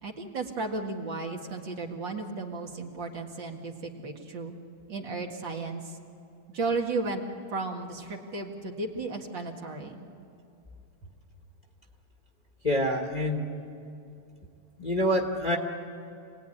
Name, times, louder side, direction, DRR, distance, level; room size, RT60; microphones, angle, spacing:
voice 1, 0.0-4.5 4.9-5.8 6.5-7.2 7.5-10.0, right 3 dB, 60° right, 1 dB, 2.5 m, -34 dB
voice 2, 12.6-13.5 14.8-15.6, equal, 20° left, 1 dB, 1.4 m, -26 dB
27.5 x 19.0 x 10.0 m, 2.6 s
omnidirectional pair, 2.4 m